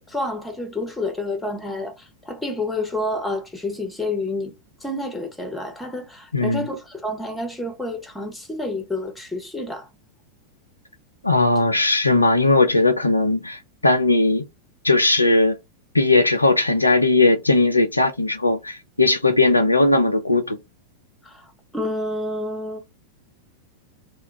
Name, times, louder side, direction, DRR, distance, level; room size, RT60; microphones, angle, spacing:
voice 1, 0.0-4.5 4.8-9.9 21.2-21.4 21.7-22.8, left 2 dB, 5° left, 0.7 m, -29 dB
voice 2, 6.3-6.7 11.2-14.4 14.8-15.6 15.9-20.6, left 2 dB, 85° left, 0.4 m, -18 dB
2.2 x 2.0 x 3.1 m
figure-of-eight pair, 90°, 0 cm